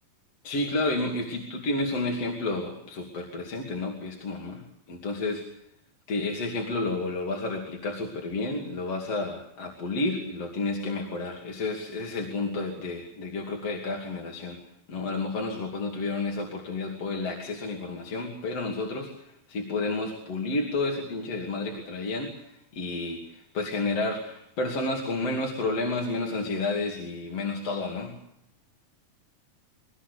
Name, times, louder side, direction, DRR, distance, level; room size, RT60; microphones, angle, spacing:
voice 1, 0.4-4.6 4.9-5.4 6.1-14.6 14.9-28.1, left 2 dB, 45° left, 0 dB, 3.5 m, -31 dB
23.5 x 19.0 x 8.4 m, 0.76 s
omnidirectional pair, 4.3 m